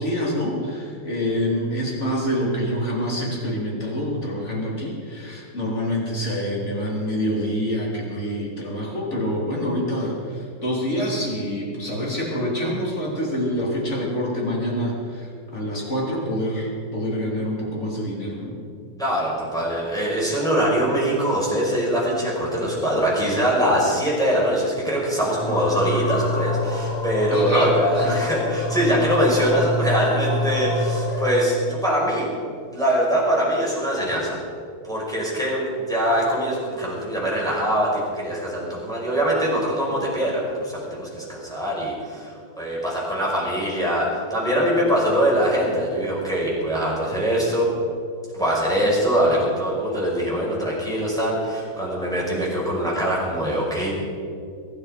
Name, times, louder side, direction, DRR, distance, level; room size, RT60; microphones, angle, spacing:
voice 1, 0.0-18.6 27.3-28.2 28.9-29.0 31.1-31.2, equal, 30° left, -3 dB, 3.7 m, -26 dB
voice 2, 19.0-32.3 32.7-34.4 34.9-42.3 42.6-47.7 48.3-53.9, equal, ahead, -6 dB, 5.4 m, -23 dB
sound 1, 25.3-31.5, left 2 dB, 80° left, 3.1 m, -27 dB
22.5 x 12.0 x 5.1 m, 2.4 s
omnidirectional pair, 2.4 m